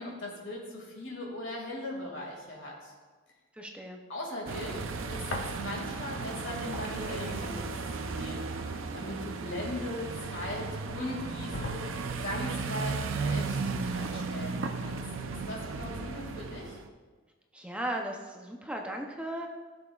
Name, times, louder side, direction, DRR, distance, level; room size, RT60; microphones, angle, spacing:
voice 1, 0.0-2.9 4.1-4.8 5.1-11.9 12.2-13.6 13.9-15.0 15.5-16.8, left 1 dB, 60° left, -1 dB, 2.1 m, -39 dB
voice 2, 3.5-4.0 17.5-19.5, right 1 dB, 5° right, 2 dB, 0.6 m, -36 dB
sound 1, 4.5-16.9, right 4 dB, 70° right, 0.5 m, -35 dB
sound 2, 5.3-6.0 6.4-10.3 10.9-11.0 11.5-12.4, left 1 dB, 75° left, 1.0 m, -42 dB
15.0 x 6.9 x 2.4 m, 1.4 s
head